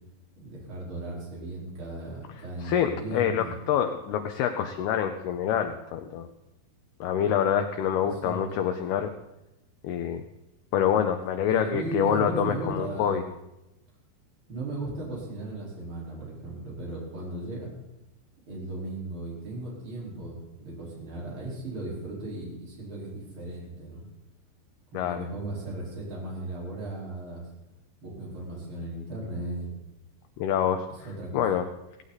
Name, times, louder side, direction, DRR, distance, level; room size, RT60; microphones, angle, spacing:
voice 1, 0.4-3.6 8.1-8.4 11.5-13.2 14.5-17.7 18.5-24.0 24.9-27.5 28.0-29.7 31.0-31.4, right 2 dB, 25° right, -4 dB, 4.7 m, -36 dB
voice 2, 2.6-6.3 7.0-9.1 9.8-10.2 10.7-13.2 24.9-25.3 30.4-30.9 31.3-31.7, left 9 dB, 90° left, 7 dB, 2.2 m, -26 dB
16.5 x 16.5 x 4.1 m, 0.94 s
omnidirectional pair, 5.6 m